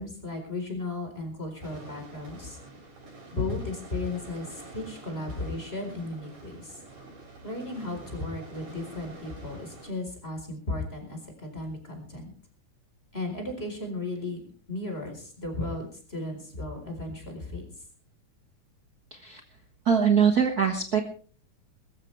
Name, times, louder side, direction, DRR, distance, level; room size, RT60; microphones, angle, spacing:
voice 1, 0.0-2.6 3.3-6.8 7.4-12.3 13.1-14.4 14.7-17.7, left 2 dB, 20° left, 4 dB, 4.4 m, -35 dB
sound 1, 1.6-9.9, right 2 dB, 75° right, 8.9 m, -47 dB
voice 2, 19.8-21.0, right 7 dB, 55° right, 5 dB, 1.0 m, -22 dB
22.0 x 14.0 x 3.4 m, 0.42 s
omnidirectional pair, 3.6 m